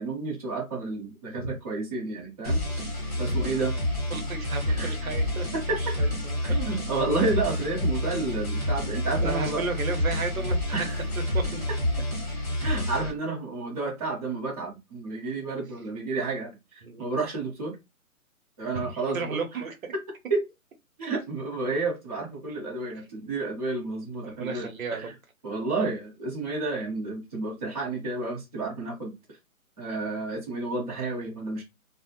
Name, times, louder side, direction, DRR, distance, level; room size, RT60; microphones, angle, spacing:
voice 1, 0.0-2.6 3.2-3.8 4.7-4.9 5.5-5.8 6.4-9.6 10.7-11.0 12.6-17.8 18.6-19.4 20.3-20.4 21.0-25.1 25.4-29.4 29.8-31.6, right 3 dB, 25° right, 0.8 m, -31 dB
sound 1, 2.4-13.1, left 1 dB, 25° left, 1.0 m, -28 dB
voice 2, 4.1-5.5 5.8-6.3 9.2-10.9 11.3-11.6 16.8-17.1 18.7-19.9 24.2-25.1, right 3 dB, 70° right, 0.8 m, -33 dB
2.5 x 2.0 x 2.8 m
hypercardioid pair, 160°, 43 cm